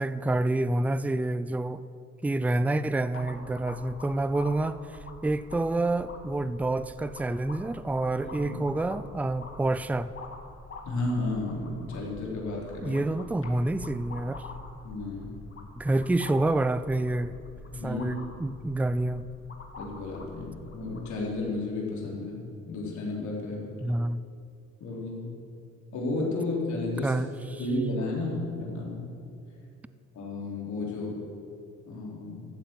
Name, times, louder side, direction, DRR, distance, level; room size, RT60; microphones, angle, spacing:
voice 1, 0.0-1.8 2.2-4.8 5.2-10.1 12.8-14.4 15.8-17.3 17.8-19.3 23.8-24.2 27.0-27.6, right 2 dB, 5° right, 15 dB, 0.4 m, -28 dB
sound 1, 3.1-21.2, left 3 dB, 45° left, 2.4 m, -46 dB
voice 2, 8.2-8.6 10.9-13.0 14.8-15.3 17.7-18.1 19.8-23.7 24.8-25.3 25.9-27.2 27.6-29.1 30.1-31.2 31.9-32.5, left 2 dB, 70° left, -3 dB, 3.9 m, -32 dB
14.0 x 8.9 x 7.6 m, 2.6 s
cardioid pair, 90°, 30 cm